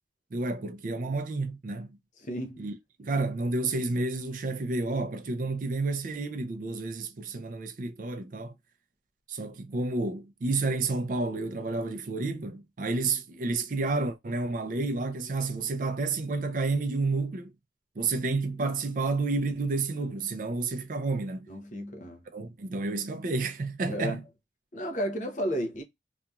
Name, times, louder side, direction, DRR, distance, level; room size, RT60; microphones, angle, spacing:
voice 1, 0.3-2.0 2.6-2.7 3.0-8.5 9.3-17.5 18.0-21.5 22.3-24.2, right 3 dB, 45° right, 0.4 m, -30 dB
voice 2, 2.2-2.7 21.5-22.2 23.9-24.2 24.7-25.8, equal, 40° left, 0.7 m, -33 dB
2.8 x 2.5 x 2.3 m
head